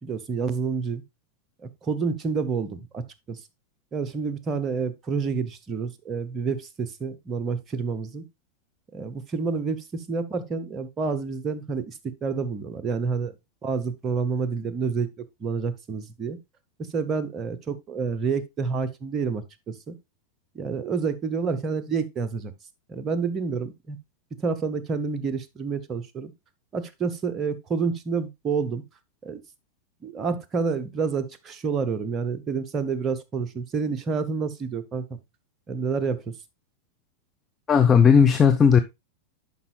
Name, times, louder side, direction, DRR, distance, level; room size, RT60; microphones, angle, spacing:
voice 1, 0.0-1.0 1.6-3.4 3.9-8.2 8.9-13.3 13.6-16.4 16.8-19.9 20.5-22.5 22.9-24.0 24.4-26.3 26.7-28.8 29.2-29.4 30.0-35.1 35.7-36.4, right 5 dB, 25° right, 0.9 m, -29 dB
voice 2, 37.7-38.8, left 6 dB, 20° left, 0.7 m, -16 dB
11.0 x 5.3 x 2.3 m
figure-of-eight pair, 90°, 0 cm